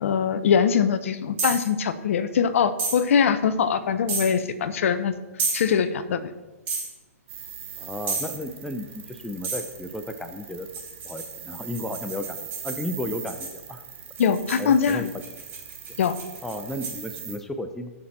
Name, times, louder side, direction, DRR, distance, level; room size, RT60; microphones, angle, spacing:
voice 1, 0.0-5.2 5.5-6.3 14.2-15.1 16.0-16.1, left 7 dB, 60° left, 12 dB, 0.9 m, -22 dB
sound 1, 1.4-1.7 2.8-3.0 4.1-4.3 5.4-5.6 6.7-6.9 8.1-8.3 9.4-9.7 10.7-13.6 14.2-17.2, right 4 dB, 25° right, 4.4 m, -31 dB
sound 2, 7.3-17.4, right 8 dB, 50° right, 2.1 m, -41 dB
voice 2, 7.8-10.7 11.0-12.4 12.6-13.8 14.6-15.1 16.4-17.9, left 1 dB, 5° left, 6 dB, 0.6 m, -33 dB
16.0 x 6.3 x 4.3 m, 1.2 s
hypercardioid pair, 140°, 8 cm